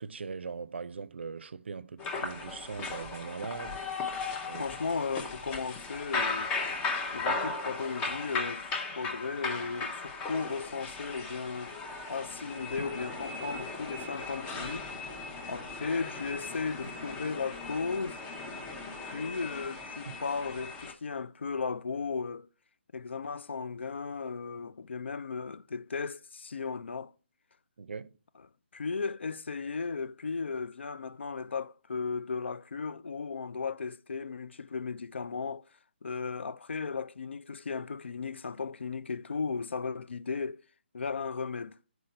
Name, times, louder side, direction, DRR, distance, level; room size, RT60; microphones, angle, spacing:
voice 1, 0.0-3.8 4.5-4.6 20.1-20.2 27.8-28.1, right 5 dB, 75° right, 0.4 m, -40 dB
sound 1, 2.0-20.9, left 3 dB, 15° left, 0.6 m, -37 dB
voice 2, 4.6-6.5 7.1-11.8 12.1-14.9 15.5-18.2 19.0-22.5 22.9-27.1 28.7-35.6 36.0-40.6 40.9-41.8, left 5 dB, 85° left, 0.3 m, -36 dB
sound 2, 12.8-13.1 14.0-15.2 16.8-17.1, left 1 dB, 50° left, 1.1 m, -48 dB
6.4 x 4.6 x 4.0 m
hypercardioid pair, 150°, 6 cm